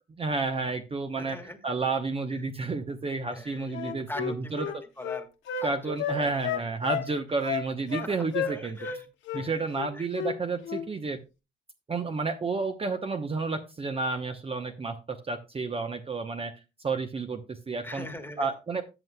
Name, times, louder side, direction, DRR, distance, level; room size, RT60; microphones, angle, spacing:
voice 1, 0.2-1.4 1.6-4.7 5.6-8.8 9.3-11.2 11.9-16.5 16.8-18.1 18.4-18.8, right 3 dB, 30° right, 7 dB, 0.9 m, -31 dB
voice 2, 1.1-1.6 2.3-2.4 3.3-5.3 5.5-6.7 7.1-7.2 7.9-9.1 9.3-10.1 17.8-18.5, left 1 dB, 10° left, 7 dB, 1.7 m, -42 dB
Wind instrument woodwind instrument, 3.7-5.7 6.0-7.1 7.4-8.1 8.3-9.0 9.2-9.4 9.7-10.4 10.6-10.8, left 8 dB, 80° left, 1.5 m, -32 dB
13.5 x 7.7 x 2.3 m, 0.27 s
cardioid pair, 90°, 20 cm